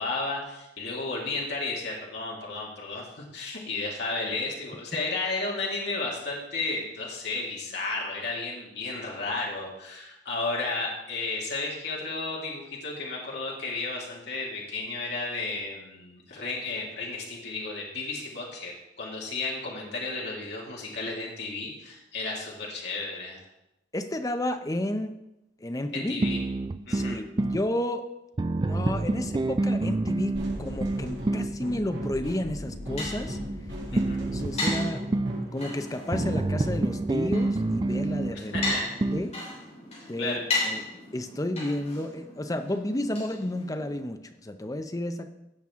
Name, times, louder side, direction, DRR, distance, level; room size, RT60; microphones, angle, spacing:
voice 1, 0.0-23.4 25.9-26.4 26.9-27.2 33.9-34.2 38.3-38.9 40.2-40.4, left 3 dB, 60° left, -3 dB, 2.2 m, -33 dB
voice 2, 23.9-25.2 25.6-26.3 26.9-28.1 28.7-33.4 33.9-35.0 35.5-38.5 39.1-39.3 40.1-40.4 40.6-40.8 41.1-45.3, left 1 dB, 20° left, 7 dB, 0.6 m, -32 dB
sound 1, 26.2-27.6 28.4-31.6 34.0-35.4 36.1-39.3, right 2 dB, 25° right, 0.3 m, -27 dB
sound 2, 30.3-37.0, equal, 65° right, 3.1 m, -36 dB
sound 3, 32.4-44.0, left 2 dB, 35° left, 3.5 m, -37 dB
16.5 x 6.1 x 3.6 m, 0.91 s
head